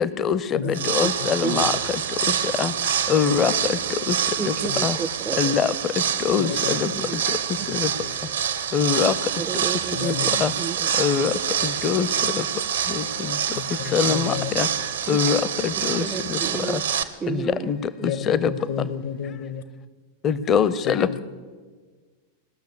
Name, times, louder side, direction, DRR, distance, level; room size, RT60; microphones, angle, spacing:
voice 1, 0.0-1.7 2.6-2.7 3.1-3.5 4.1-4.2 4.5-4.6 4.8-5.0 5.4-5.7 6.2-6.9 7.7-7.9 8.7-9.1 10.0-10.1 10.4-10.5 11.0-11.3 11.6-12.1 12.9-13.3 13.9-14.7 15.1-16.4 17.3-17.8 18.3-18.5 20.2-21.2, left 7 dB, 30° left, 16 dB, 0.6 m, -23 dB
voice 2, 0.5-0.9 1.2-1.8 4.7-4.8 6.4-7.1 7.6-8.1 9.9-10.4 12.2-12.3 13.5-14.5 18.0-19.6 20.8-21.2, left 7 dB, 60° left, 12 dB, 0.8 m, -32 dB
sound 1, 0.7-17.0, right 8 dB, 65° right, 0.7 m, -26 dB
voice 3, 4.4-5.5 6.8-7.2 9.4-10.2 10.6-10.9 12.0-12.1 15.1-15.2 16.0-16.8 17.2-17.7, right 7 dB, 20° right, 16 dB, 0.4 m, -31 dB
18.0 x 6.5 x 8.2 m, 1.5 s
figure-of-eight pair, 90°, 0 cm